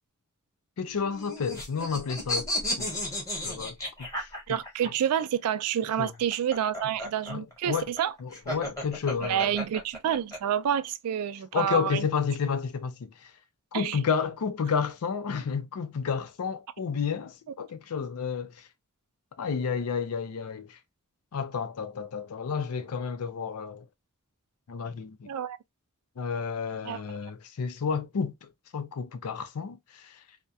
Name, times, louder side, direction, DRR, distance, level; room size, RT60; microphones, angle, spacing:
voice 1, 0.8-2.5 2.8-2.9 3.4-4.6 4.8-4.9 6.0-6.1 7.3-7.9 8.2-9.5 11.5-13.3 13.7-18.6 19.4-20.8 21.3-23.9 24.7-25.3 26.2-30.2, left 6 dB, 75° left, 0.5 m, -31 dB
sound 1, 0.9-4.9 6.1-10.4, left 1 dB, 15° left, 0.9 m, -33 dB
voice 2, 4.5-8.1 9.2-12.1 13.7-14.0 25.3-25.6 26.8-27.0, right 9 dB, 75° right, 0.3 m, -28 dB
2.3 x 2.1 x 2.6 m
head